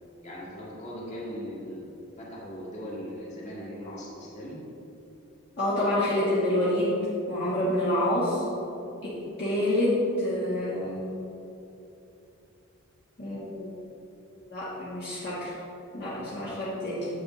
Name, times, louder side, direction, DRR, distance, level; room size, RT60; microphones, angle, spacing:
voice 1, 0.2-1.9 2.2-4.6, equal, 35° left, -6 dB, 1.9 m, -39 dB
voice 2, 5.6-6.9 7.3-8.4 9.0-11.1 13.2-13.7 14.5-15.5 15.9-17.1, left 1 dB, 50° left, -9 dB, 1.5 m, -27 dB
8.3 x 8.0 x 3.1 m, 2.8 s
head